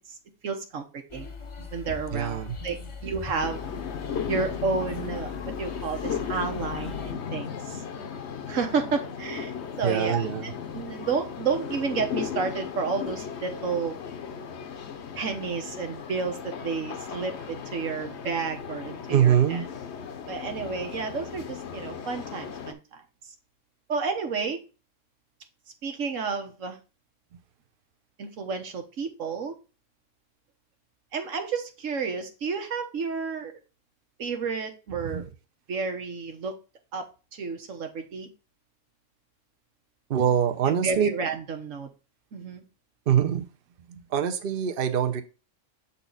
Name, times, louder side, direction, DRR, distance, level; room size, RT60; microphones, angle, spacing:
voice 1, 0.4-1.3 1.7-3.6 4.3-7.8 8.5-14.0 15.1-19.6 20.3-23.3 23.9-24.6 25.8-26.8 28.2-29.6 31.1-33.5 34.2-35.3 35.7-36.6 36.9-38.3 40.6-41.9 42.3-42.6, right 5 dB, 90° right, 1.5 m, -31 dB
sound 1, 1.1-7.1, left 5 dB, 30° left, 0.7 m, -40 dB
voice 2, 2.1-2.6 9.8-10.4 19.1-19.6 35.0-35.2 40.1-41.1 43.1-43.5 44.1-45.2, right 9 dB, 55° right, 0.8 m, -23 dB
sound 2, 3.4-22.7, left 7 dB, 65° left, 1.0 m, -36 dB
7.1 x 4.2 x 3.9 m
omnidirectional pair, 1.3 m